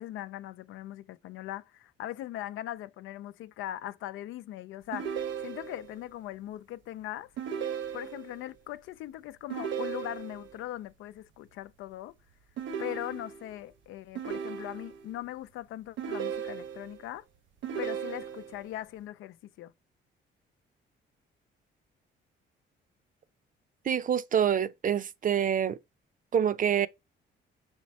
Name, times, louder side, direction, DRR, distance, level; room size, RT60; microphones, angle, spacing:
voice 1, 0.0-7.3 7.9-12.1 12.8-17.3 17.8-19.7, left 13 dB, 85° left, 0.5 m, -40 dB
sound 1, 4.9-6.0 7.4-8.4 9.5-10.5 12.6-13.6 14.2-15.1 16.0-17.0 17.6-18.6, right 8 dB, 70° right, 1.1 m, -36 dB
voice 2, 23.8-25.8 26.3-26.9, right 8 dB, 40° right, 0.6 m, -26 dB
6.2 x 4.4 x 4.2 m
cardioid pair, 90°, 20 cm